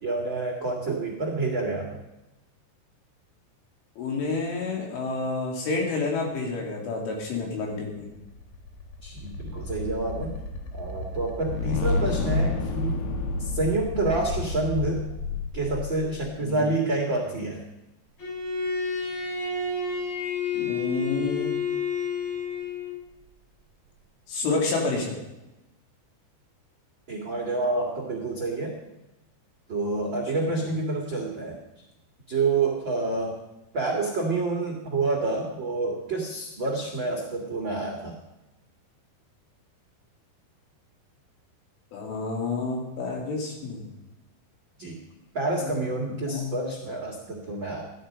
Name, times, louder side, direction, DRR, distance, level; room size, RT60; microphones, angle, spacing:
voice 1, 0.0-2.0 9.0-10.3 10.7-13.0 13.4-15.1 15.5-17.6 27.1-28.8 29.7-31.6 32.3-33.4 33.7-38.1 44.8-45.0 45.3-47.8, right 3 dB, 80° right, 0 dB, 1.0 m, -28 dB
voice 2, 4.0-8.1 16.4-16.7 20.5-21.6 24.3-25.2 30.3-30.6 41.9-43.9 45.6-46.6, left 3 dB, 85° left, 0 dB, 5.4 m, -29 dB
sound 1, 8.0-16.4, left 3 dB, 70° left, 3.0 m, -30 dB
Bowed string instrument, 18.2-23.0, left 5 dB, 45° left, 6.7 m, -30 dB
15.0 x 11.0 x 5.2 m, 0.96 s
omnidirectional pair, 5.5 m